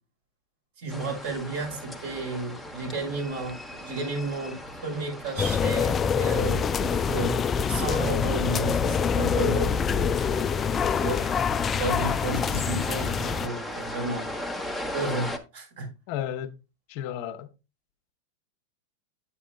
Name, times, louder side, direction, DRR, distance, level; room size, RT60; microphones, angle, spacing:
voice 1, 0.8-7.4 7.7-9.7 11.0-11.3 11.7-14.3 14.9-15.9, right 2 dB, 70° right, 4.7 m, -32 dB
sound 1, 0.9-15.4, left 1 dB, ahead, 1.1 m, -38 dB
sound 2, 5.4-13.5, left 6 dB, 25° left, 0.3 m, -25 dB
voice 2, 9.9-10.6 16.1-16.6 16.9-17.5, left 10 dB, 55° left, 0.9 m, -34 dB
8.7 x 8.3 x 2.4 m
hypercardioid pair, 125°, 0 cm